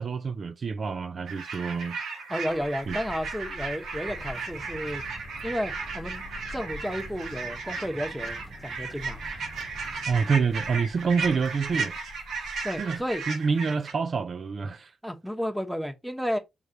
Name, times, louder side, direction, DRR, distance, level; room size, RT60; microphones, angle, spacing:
voice 1, 0.0-2.0 2.9-3.0 10.1-11.9 12.8-14.9, right 5 dB, 55° right, 0.4 m, -27 dB
sound 1, 1.3-13.9, right 4 dB, 80° right, 1.1 m, -35 dB
voice 2, 2.3-5.0 5.4-9.2 12.6-13.2 15.0-16.4, equal, 5° right, 1.0 m, -32 dB
sound 2, 2.5-13.3, left 3 dB, 45° left, 0.6 m, -47 dB
sound 3, 4.1-10.3, right 2 dB, 30° right, 0.8 m, -48 dB
5.1 x 3.2 x 2.8 m
cardioid pair, 60°, 0 cm